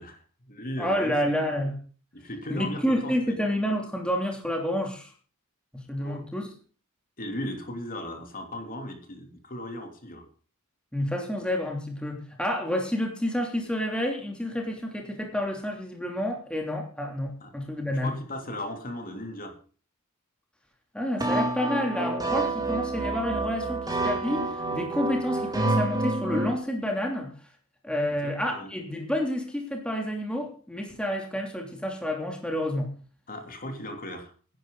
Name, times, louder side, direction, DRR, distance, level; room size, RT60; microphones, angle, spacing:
voice 1, 0.0-1.2 2.1-3.3 6.0-6.2 7.2-10.3 17.4-17.5 18.0-19.6 28.2-28.7 33.3-34.3, left 1 dB, 40° left, 4 dB, 3.2 m, -37 dB
voice 2, 0.8-1.7 2.5-5.1 5.7-6.5 10.9-18.1 20.9-27.3 27.8-32.9, equal, 5° left, 1 dB, 2.9 m, -29 dB
sound 1, 21.2-26.5, right 2 dB, 15° right, 2.8 m, -28 dB
17.0 x 11.0 x 3.9 m, 0.39 s
head